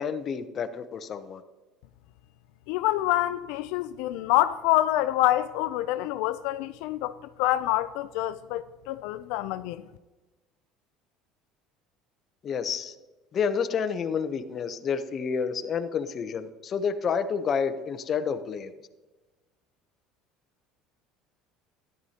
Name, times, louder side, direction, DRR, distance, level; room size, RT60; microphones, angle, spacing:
voice 1, 0.0-1.4 12.4-13.0 13.3-18.7, left 6 dB, 35° left, 0.7 m, -29 dB
voice 2, 2.7-7.1 7.4-9.8, left 15 dB, 75° left, 0.3 m, -26 dB
14.0 x 10.5 x 2.8 m
cardioid pair, 140°, 0 cm